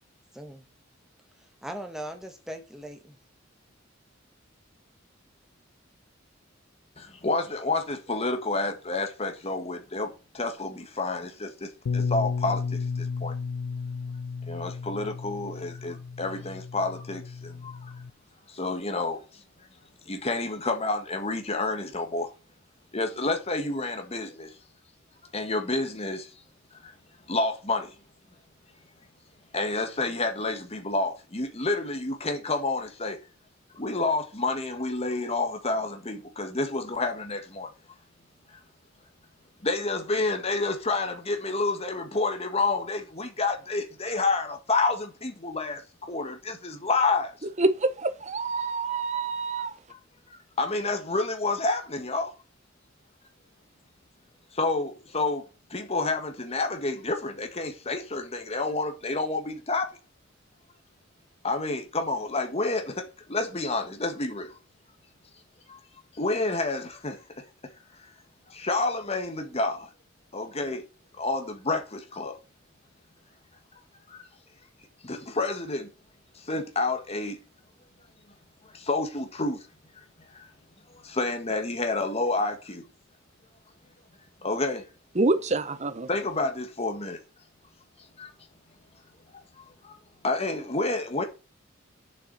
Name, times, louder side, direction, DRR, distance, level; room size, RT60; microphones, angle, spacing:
voice 1, 0.3-0.6 1.4-3.2, right 1 dB, ahead, 1.5 m, -39 dB
voice 2, 7.0-13.3 14.5-17.9 18.5-19.4 20.1-22.3 22.9-24.5 25.3-26.3 26.7-26.9 27.3-27.9 29.5-33.2 33.7-37.7 39.6-47.3 49.6-50.0 50.3-52.3 54.5-55.4 55.7-59.9 61.4-64.5 65.7-65.8 66.1-67.4 68.0-68.1 68.5-69.9 70.3-70.8 71.2-72.4 74.1-74.2 75.0-75.9 76.3-77.4 78.7-79.7 80.0-80.1 80.3-80.5 80.9-82.8 84.4-84.9 86.1-87.2 88.2-88.3 89.6-90.0 90.2-91.2, left 3 dB, 30° left, 1.6 m, -29 dB
Bass guitar, 11.9-18.1, left 5 dB, 85° left, 0.4 m, -33 dB
voice 3, 47.6-49.7 85.1-86.1, right 3 dB, 35° right, 0.9 m, -26 dB
7.4 x 6.8 x 6.7 m
head